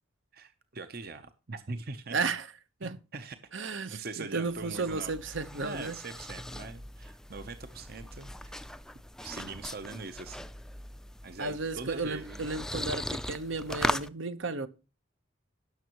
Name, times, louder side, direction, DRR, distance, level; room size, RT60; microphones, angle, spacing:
voice 1, 0.3-2.2 2.8-3.4 3.9-8.6 9.2-10.5 11.2-12.4, right 3 dB, 50° right, 0.8 m, -42 dB
voice 2, 2.1-2.5 2.8-2.9 3.5-6.0 11.4-14.7, right 3 dB, 75° right, 1.1 m, -33 dB
sound 1, 4.5-14.1, left 1 dB, 5° left, 0.4 m, -39 dB
17.0 x 6.9 x 3.0 m
head